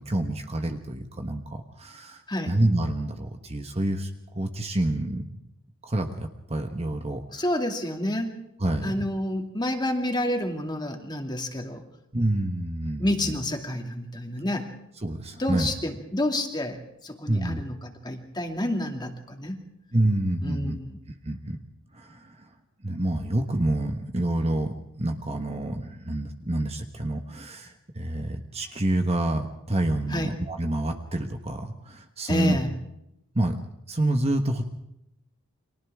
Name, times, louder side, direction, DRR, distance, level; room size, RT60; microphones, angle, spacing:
voice 1, 0.0-5.3 5.8-7.5 8.6-8.9 12.1-13.4 15.0-15.7 17.3-17.6 19.9-20.8 21.2-21.6 21.9-22.5 22.8-32.6 33.3-33.6 33.9-34.6, right 1 dB, 30° right, 5 dB, 1.3 m, -28 dB
voice 2, 7.3-8.3 8.8-11.8 13.0-14.7 15.4-19.6 20.4-20.9 30.1-30.3 32.3-32.7, left 1 dB, 20° left, 3 dB, 2.4 m, -29 dB
30.0 x 24.5 x 3.7 m, 0.82 s
head